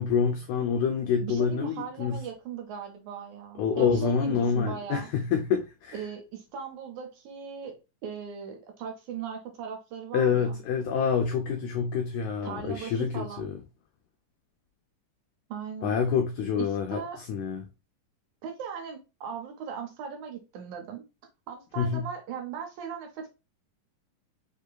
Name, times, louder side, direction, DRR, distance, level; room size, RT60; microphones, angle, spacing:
voice 1, 0.0-2.2 3.6-6.0 10.1-13.5 15.8-17.0 17.3-17.7 21.8-22.1, left 6 dB, 90° left, 1.6 m, -27 dB
voice 2, 1.2-5.1 5.9-7.7 8.0-10.6 12.4-13.5 15.5-16.0 16.6-17.2 18.4-21.0 21.5-23.3, right 7 dB, 70° right, 2.0 m, -38 dB
6.4 x 2.8 x 2.2 m
omnidirectional pair, 4.0 m